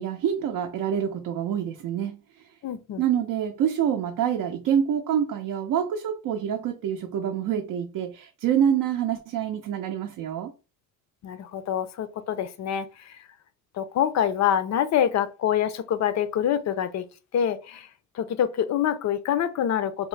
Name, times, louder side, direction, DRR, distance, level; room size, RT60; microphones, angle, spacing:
voice 1, 0.0-2.5 3.0-10.5, right 9 dB, 60° right, 0.5 m, -26 dB
voice 2, 2.6-3.0 11.2-13.2 13.7-17.1 17.3-17.9 18.1-20.1, left 9 dB, 45° left, 0.4 m, -26 dB
3.6 x 2.1 x 3.1 m
cardioid pair, 100°, 39 cm